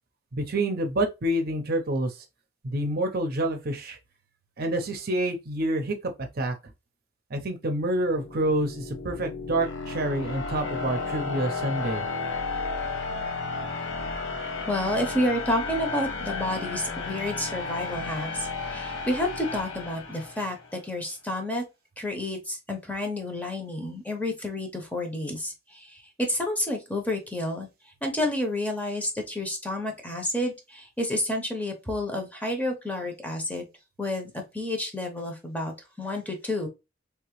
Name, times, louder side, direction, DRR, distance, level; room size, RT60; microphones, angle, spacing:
voice 1, 0.3-2.1 2.6-4.0 4.6-6.1 6.4-6.5 7.3-12.0, right 1 dB, 55° right, 0.7 m, -27 dB
sound 1, 7.8-20.7, left 4 dB, 75° left, 0.9 m, -33 dB
voice 2, 14.7-21.6 22.0-27.7 28.0-33.7 34.0-36.7, left 1 dB, 10° left, 0.9 m, -30 dB
3.4 x 2.9 x 3.1 m
head